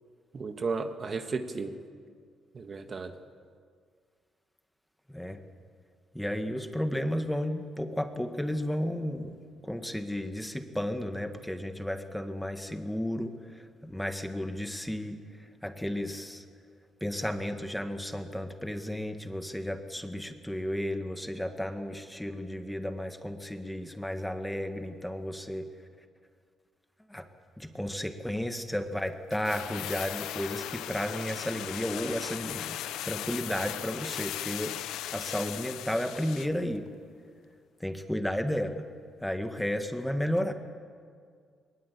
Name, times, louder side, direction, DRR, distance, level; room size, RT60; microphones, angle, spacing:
voice 1, 0.3-1.7 2.5-3.1, right 4 dB, 40° right, 7 dB, 1.6 m, -34 dB
voice 2, 6.1-9.3 9.6-16.4 17.0-25.7 27.1-27.3 27.6-32.8 33.0-34.8 35.1-36.9 37.8-38.8 39.2-40.5, left 1 dB, 5° left, 7 dB, 1.7 m, -33 dB
sound 1, 29.3-36.6 36.9-37.0, left 12 dB, 90° left, 0.7 m, -38 dB
21.5 x 20.5 x 8.4 m, 2.1 s
cardioid pair, 90°, 0 cm